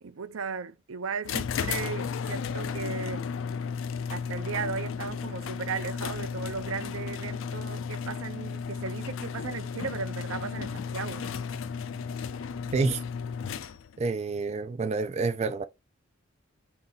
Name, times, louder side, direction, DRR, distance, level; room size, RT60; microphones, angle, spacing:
voice 1, 0.0-3.3 4.1-11.3, right 5 dB, 80° right, 0.6 m, -36 dB
sound 1, 1.2-14.0, left 6 dB, 70° left, 0.4 m, -34 dB
voice 2, 14.0-15.6, right 4 dB, 30° right, 0.3 m, -28 dB
3.7 x 2.8 x 3.9 m
head